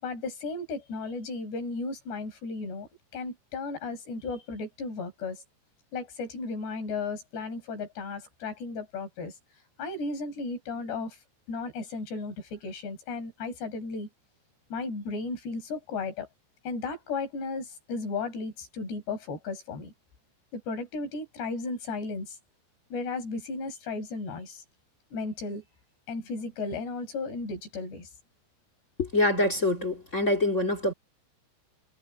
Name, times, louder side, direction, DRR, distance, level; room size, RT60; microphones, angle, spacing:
voice 1, 0.0-5.4 5.9-9.3 9.8-11.2 11.5-14.1 14.7-16.3 16.7-19.9 20.5-22.4 22.9-24.6 25.1-25.6 26.1-28.1, left 3 dB, 60° left, 7.0 m, -35 dB
voice 2, 29.0-30.9, left 2 dB, 40° left, 1.0 m, -25 dB
omnidirectional pair, 5.5 m